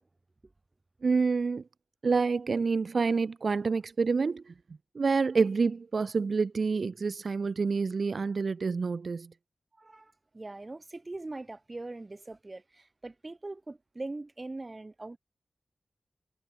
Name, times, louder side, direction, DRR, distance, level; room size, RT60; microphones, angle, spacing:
voice 1, 1.0-1.6 2.0-4.5 4.9-9.3, right 4 dB, 65° right, 1.4 m, -28 dB
voice 2, 9.8-15.2, right 2 dB, 30° right, 3.6 m, -41 dB
wide cardioid pair, 80°, 0 cm